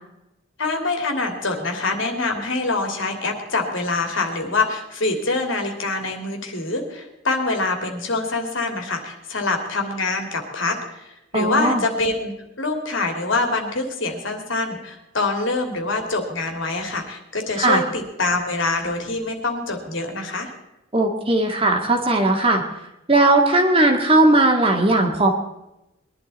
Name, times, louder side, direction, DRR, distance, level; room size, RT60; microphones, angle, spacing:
voice 1, 0.6-12.3 12.6-20.5, left 3 dB, 75° left, 3 dB, 2.9 m, -25 dB
voice 2, 11.3-11.8 17.6-17.8 20.9-22.6 23.1-25.3, right 2 dB, 30° right, 2 dB, 1.9 m, -17 dB
21.5 x 11.5 x 4.2 m, 0.92 s
head